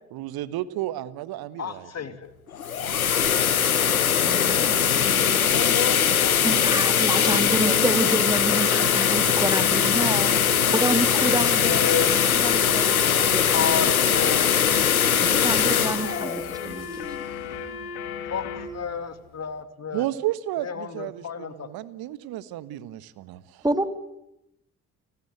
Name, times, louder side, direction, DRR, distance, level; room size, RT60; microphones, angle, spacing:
voice 1, 0.1-1.9 19.9-23.6, right 14 dB, 60° right, 17 dB, 1.4 m, -32 dB
voice 2, 1.6-2.3 5.4-6.6 7.0-7.5 8.7-9.1 10.7-10.8 11.3-12.1 12.6-12.8 13.1-13.2 13.5-14.5 15.3-15.4 16.9-17.0 18.3-18.4 18.7-20.0 20.6-21.7, left 7 dB, 40° left, 10 dB, 2.8 m, -31 dB
sound 1, 2.5-17.4, left 8 dB, 90° left, 1.0 m, -21 dB
voice 3, 4.2-6.0 6.4-14.3 15.2-16.9 23.6-23.9, right 1 dB, 10° right, 9 dB, 3.0 m, -29 dB
sound 2, 8.0-18.7, left 6 dB, 65° left, 2.6 m, -35 dB
30.0 x 19.0 x 8.0 m, 0.83 s
figure-of-eight pair, 45°, 41 cm